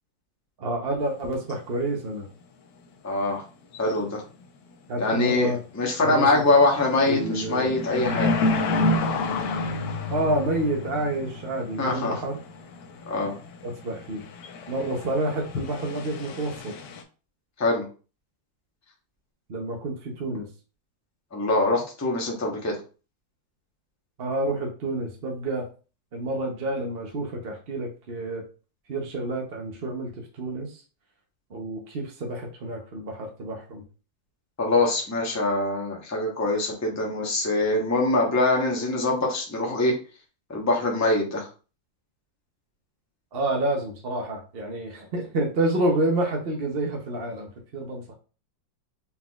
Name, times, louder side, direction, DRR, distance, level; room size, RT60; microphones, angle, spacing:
voice 1, 0.6-2.3 4.9-5.6 6.0-6.3 7.1-7.8 10.1-12.3 13.6-14.2 14.7-16.7 19.5-20.5 24.2-25.6 26.1-28.4 28.9-30.1 30.4-30.7 31.5-33.8 43.3-48.1, right 2 dB, 45° right, 0 dB, 0.8 m, -28 dB
sound 1, 1.1-1.2 1.5-1.6 3.7-4.1 4.4-4.5 5.1-5.4 5.8-5.9 6.2-17.0, left 2 dB, 70° left, 1.2 m, -30 dB
voice 2, 3.0-3.4 3.8-4.2 5.0-8.3 11.8-12.1 13.1-13.3 17.6-17.8 21.3-22.8 34.6-39.9 40.5-41.5, left 2 dB, 15° left, 0 dB, 0.6 m, -23 dB
4.3 x 3.9 x 2.4 m, 0.34 s
omnidirectional pair, 2.0 m